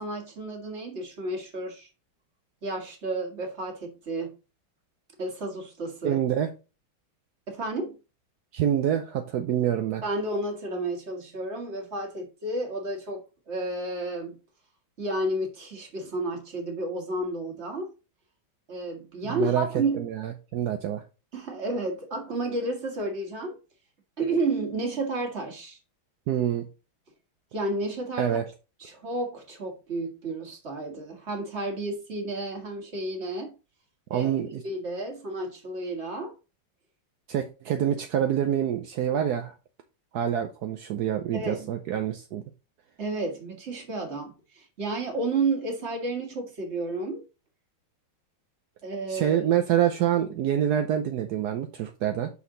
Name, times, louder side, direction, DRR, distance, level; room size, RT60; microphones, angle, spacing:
voice 1, 0.0-1.9 2.6-4.3 5.2-6.2 7.5-8.0 10.0-14.4 15.0-17.9 18.7-20.1 21.3-23.6 24.2-25.8 27.5-28.3 28.8-33.5 34.1-34.3 34.6-36.3 41.3-41.7 43.0-47.2 48.8-49.5, right 2 dB, 35° right, 1.8 m, -31 dB
voice 2, 6.0-6.5 8.5-10.0 19.2-19.7 20.0-21.0 26.3-26.7 28.2-28.4 34.1-34.6 37.3-39.5 40.1-42.4 49.1-52.3, right 10 dB, 65° right, 1.0 m, -26 dB
6.3 x 5.7 x 3.9 m
omnidirectional pair, 2.3 m